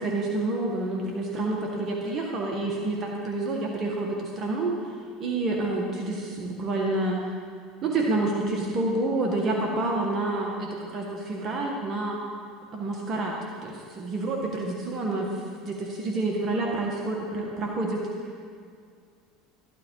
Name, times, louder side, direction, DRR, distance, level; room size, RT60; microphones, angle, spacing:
voice 1, 0.0-4.7 5.2-7.2 7.8-12.2 12.7-13.3 13.6-15.3 15.6-18.0, right 2 dB, 45° right, -1 dB, 1.9 m, -28 dB
13.5 x 12.0 x 4.9 m, 2.2 s
supercardioid pair, 100°, 0 cm